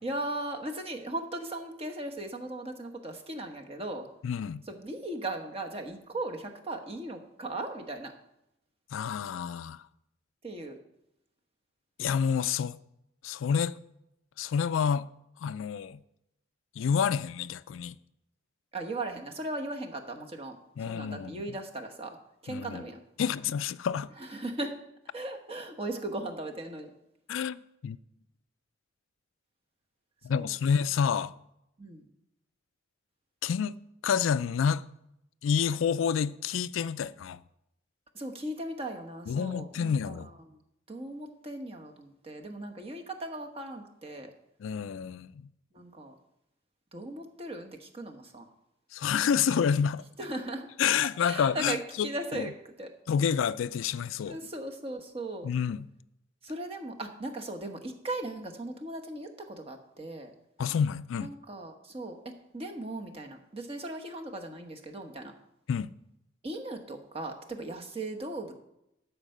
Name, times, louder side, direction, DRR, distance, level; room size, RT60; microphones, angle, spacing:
voice 1, 0.0-4.1 4.7-8.1 10.4-10.8 18.7-20.6 20.9-22.2 22.4-23.0 24.2-24.7 25.1-26.9 30.3-30.5 31.8-32.1 38.1-40.6 40.9-44.3 45.7-46.1 46.9-48.5 50.2-50.7 51.2-52.5 52.8-52.9 54.2-55.5 56.4-60.3 61.2-65.3 66.4-68.5, right 2 dB, 30° right, 1.1 m, -38 dB
voice 2, 4.2-4.6 8.9-9.8 12.0-12.8 13.2-13.8 14.4-15.1 15.4-16.0 16.8-18.0 20.8-21.5 22.5-22.8 23.2-24.1 27.3-28.0 30.2-31.3 33.4-33.8 34.0-34.8 35.4-37.4 39.3-40.3 44.6-45.5 48.9-50.0 50.8-52.5 53.1-54.4 55.4-55.9 60.6-61.3 65.7-65.9, left 7 dB, 80° left, 0.4 m, -29 dB
12.0 x 4.7 x 6.5 m
head